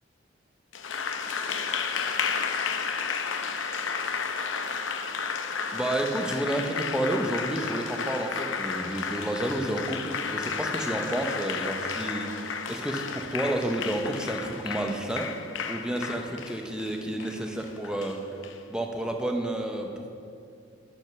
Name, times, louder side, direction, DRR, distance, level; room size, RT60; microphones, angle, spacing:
Applause, 0.7-18.6, left 5 dB, 80° left, 0.7 m, -32 dB
voice 1, 5.7-15.3 15.7-18.2 18.7-20.1, right 1 dB, 5° right, 2 dB, 0.7 m, -30 dB
11.5 x 6.2 x 5.9 m, 2.4 s
head